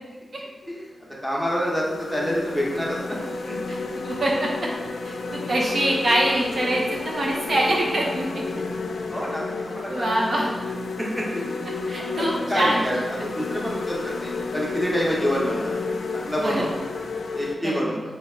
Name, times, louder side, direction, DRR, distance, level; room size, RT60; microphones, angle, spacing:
sound 1, 0.6-0.8 1.4-17.5, left 3 dB, 90° left, 0.4 m, -31 dB
voice 1, 1.2-3.2 3.5-3.6 9.1-10.1 11.0-11.7 11.9-15.8 16.1-16.7 17.3-18.0, equal, 5° right, -4 dB, 0.8 m, -27 dB
voice 2, 4.0-4.5 5.0-8.4 9.9-10.5 11.9-13.0 16.4-16.7 17.7-17.9, right 1 dB, 50° right, -2 dB, 0.5 m, -24 dB
3.4 x 2.8 x 4.3 m, 1.2 s
wide cardioid pair, 130°, 0 cm